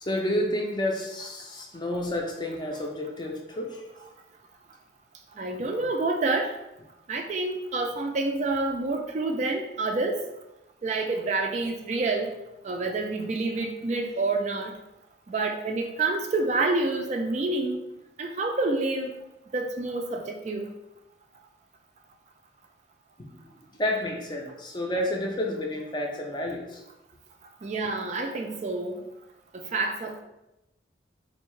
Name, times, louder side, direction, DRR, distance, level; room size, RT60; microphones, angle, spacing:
voice 1, 0.0-3.8 23.2-23.3 23.7-26.8, left 1 dB, 25° left, 1 dB, 0.5 m, -30 dB
voice 2, 5.4-6.5 7.1-10.2 10.8-12.3 12.6-14.7 15.3-17.8 18.2-19.1 19.5-20.7 27.6-29.0 29.5-30.2, right 3 dB, 40° right, 3 dB, 0.3 m, -28 dB
4.1 x 2.7 x 3.1 m, 0.91 s
head